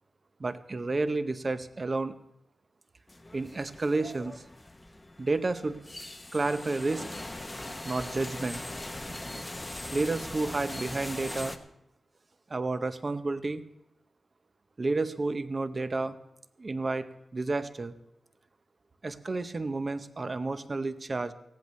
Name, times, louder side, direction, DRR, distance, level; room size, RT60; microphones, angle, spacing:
voice 1, 0.4-2.2 3.3-4.4 5.2-5.8 6.3-7.1 7.8-8.6 9.9-11.6 12.5-13.6 14.8-16.2 16.6-17.1 17.3-17.9 19.0-21.3, right 3 dB, 35° right, 11 dB, 0.7 m, -31 dB
sound 1, 3.1-11.6, left 1 dB, 15° left, 0.8 m, -40 dB
19.0 x 16.0 x 3.2 m, 0.83 s
wide cardioid pair, 150°, 0 cm